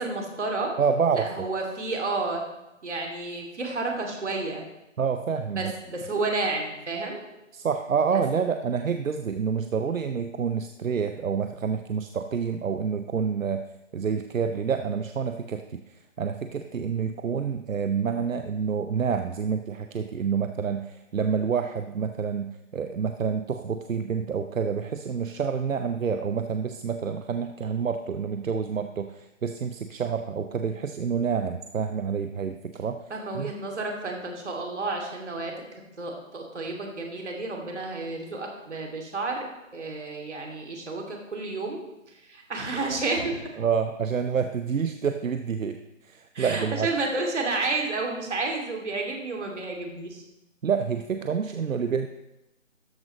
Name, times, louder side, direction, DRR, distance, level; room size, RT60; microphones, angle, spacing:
voice 1, 0.0-0.7 1.1-2.4 2.8-4.7 5.5-7.2 33.1-35.5 36.0-39.4 39.7-41.8 42.3-43.6 46.3-50.2, right 3 dB, 60° right, 1 dB, 2.6 m, -31 dB
voice 2, 0.8-1.5 5.0-5.7 7.5-13.6 13.9-33.0 33.3-33.5 43.6-46.9 50.6-52.1, right 6 dB, 85° right, 8 dB, 0.7 m, -28 dB
13.0 x 8.7 x 3.1 m, 0.93 s
figure-of-eight pair, 165°, 38 cm